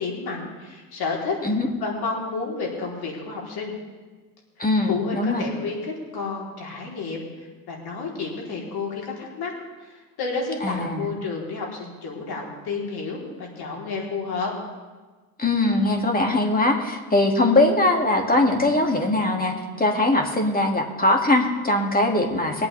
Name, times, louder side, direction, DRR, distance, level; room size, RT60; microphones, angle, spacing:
voice 1, 0.0-1.4 1.8-3.7 4.9-9.5 9.8-14.5, left 4 dB, 60° left, -2 dB, 4.0 m, -31 dB
voice 2, 4.6-5.5 10.6-11.0 15.4-22.7, left 2 dB, 20° left, 2 dB, 2.5 m, -21 dB
23.0 x 8.7 x 3.5 m, 1.3 s
supercardioid pair, 75°, 43 cm